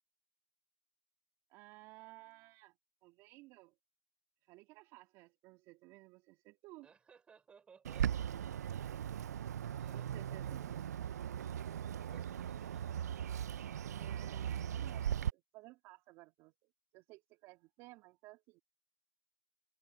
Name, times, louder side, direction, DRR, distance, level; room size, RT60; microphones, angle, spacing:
voice 1, 1.5-2.8 3.0-3.8 4.4-6.9 9.9-10.8 13.9-18.6, right 21 dB, 30° right, 2.5 m, -57 dB
voice 2, 6.8-8.8 9.7-10.8 12.0-13.3, right 6 dB, 10° right, 5.7 m, -63 dB
Bird, 7.8-15.3, right 9 dB, 60° right, 0.6 m, -38 dB
hypercardioid pair, 145°, 10 cm